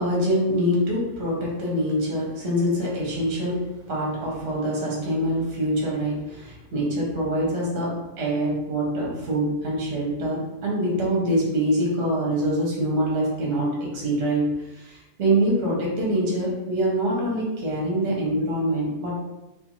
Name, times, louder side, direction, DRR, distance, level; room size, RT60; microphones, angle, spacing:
voice 1, 0.0-3.6 3.9-19.2, right 1 dB, 50° right, -4 dB, 0.9 m, -25 dB
2.5 x 2.5 x 2.9 m, 0.99 s
omnidirectional pair, 1.6 m